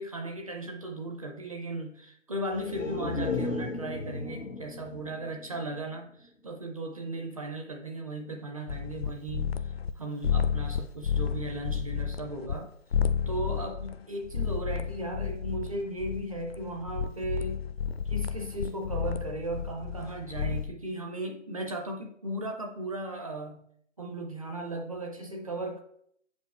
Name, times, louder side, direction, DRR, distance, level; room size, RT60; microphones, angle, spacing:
voice 1, 0.0-12.7 13.3-17.7 18.1-23.6 24.0-25.8, right 1 dB, 30° right, 2 dB, 0.6 m, -36 dB
sound 1, 2.5-6.3 6.6-6.7, left 3 dB, 75° left, 0.9 m, -35 dB
sound 2, 8.7-9.9 10.2-12.6 12.9-20.7, left 7 dB, 55° left, 0.5 m, -31 dB
8.5 x 5.1 x 3.4 m, 0.69 s
figure-of-eight pair, 145°, 37 cm